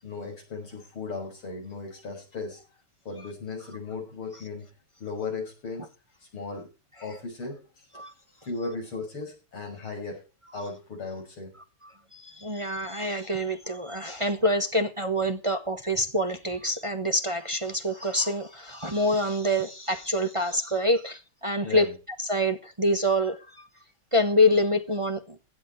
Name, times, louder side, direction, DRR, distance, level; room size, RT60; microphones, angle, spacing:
voice 1, 0.0-2.6 3.0-4.7 5.0-5.9 6.2-6.7 7.0-7.6 8.4-10.2 10.5-11.5 21.6-21.9, left 4 dB, 70° left, 6.8 m, -36 dB
voice 2, 12.1-21.9 22.2-23.7 24.1-25.4, left 1 dB, 25° right, 0.7 m, -26 dB
16.5 x 11.0 x 4.5 m
omnidirectional pair, 2.4 m